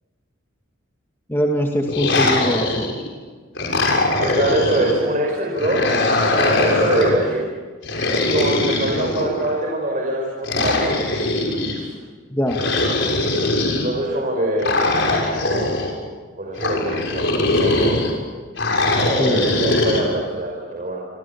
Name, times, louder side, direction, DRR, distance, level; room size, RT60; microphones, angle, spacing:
voice 1, 1.3-2.9 12.3-12.6 19.2-19.4, equal, 10° left, 1 dB, 2.4 m, -22 dB
sound 1, 1.9-3.1 3.5-5.0 5.6-7.2 7.8-9.5 10.4-11.8 12.5-13.9 14.6-15.9 16.6-18.1 18.6-20.0, left 2 dB, 60° left, 6.5 m, -21 dB
voice 2, 4.2-5.9 6.4-7.5 8.2-10.9 11.7-11.9 13.7-14.9 15.5-15.7 16.4-17.3 17.6-18.1 19.2-21.0, right 1 dB, 40° right, -1 dB, 5.7 m, -24 dB
27.0 x 27.0 x 7.3 m, 1.5 s
head